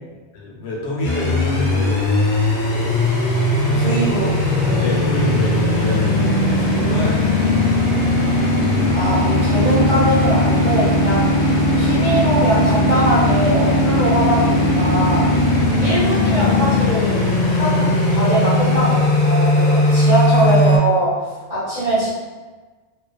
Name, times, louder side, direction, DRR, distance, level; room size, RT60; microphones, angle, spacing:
voice 1, 0.1-3.0 3.7-4.0 4.8-8.7 20.4-20.9 21.8-22.1, left 1 dB, 90° left, -4 dB, 1.0 m, -28 dB
sound 1, 1.0-20.8, left 1 dB, 60° left, 0.5 m, -18 dB
voice 2, 3.8-4.9 8.9-11.3 11.7-15.2 15.8-21.1 21.5-22.1, right 1 dB, 35° right, -14 dB, 0.9 m, -21 dB
2.4 x 2.4 x 2.2 m, 1.3 s
omnidirectional pair, 1.2 m